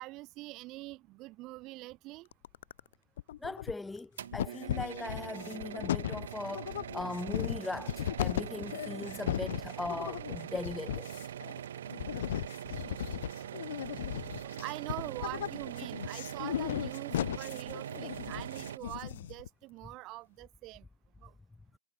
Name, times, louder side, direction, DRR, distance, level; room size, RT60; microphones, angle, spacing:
voice 1, 0.0-2.3 14.4-20.9 21.2-21.3, right 20 dB, 45° right, 4.1 m, -44 dB
sound 1, 2.3-2.9 3.2-4.0 4.3-19.5, left 12 dB, 70° left, 1.4 m, -37 dB
voice 2, 3.4-11.3, left 3 dB, 10° left, 0.6 m, -39 dB
sound 2, 4.2-18.8, right 10 dB, 75° right, 1.4 m, -42 dB
hypercardioid pair, 105°, 0 cm